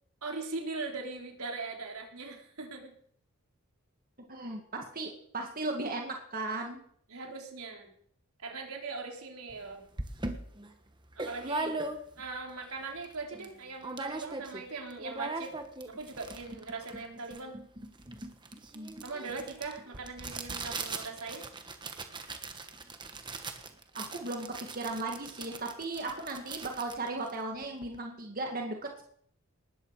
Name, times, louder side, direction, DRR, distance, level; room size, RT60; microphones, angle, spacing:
voice 1, 0.2-2.9 7.1-7.9 8.4-9.9 11.2-11.8 12.2-15.5 15.9-17.6 19.0-21.4, right 3 dB, 85° right, 1 dB, 3.8 m, -40 dB
voice 2, 4.3-6.8 18.7-19.0 24.0-29.0, right 2 dB, 40° right, 2 dB, 2.0 m, -36 dB
sound 1, 9.5-9.6 10.0-12.4 12.8-12.9 13.0-13.5 13.8-14.6 14.9-28.0, right 3 dB, 20° right, 1.3 m, -40 dB
19.5 x 13.5 x 4.9 m, 0.63 s
head